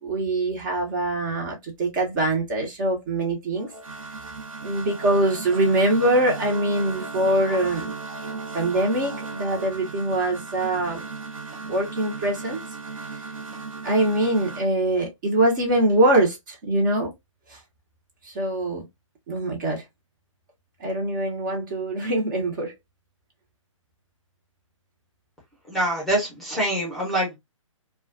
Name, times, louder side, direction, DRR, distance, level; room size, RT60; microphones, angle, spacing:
voice 1, 0.0-3.7 4.6-7.9 8.5-11.1 11.6-12.6 13.8-17.1 17.5-17.6 18.3-18.8 19.3-19.8 20.8-22.7, right 1 dB, 35° right, 0.8 m, -23 dB
sound 1, 3.6-14.7, right 4 dB, 80° right, 0.9 m, -36 dB
voice 2, 25.7-27.4, right 1 dB, ahead, 0.7 m, -25 dB
2.3 x 2.2 x 2.4 m
figure-of-eight pair, 140°, 17 cm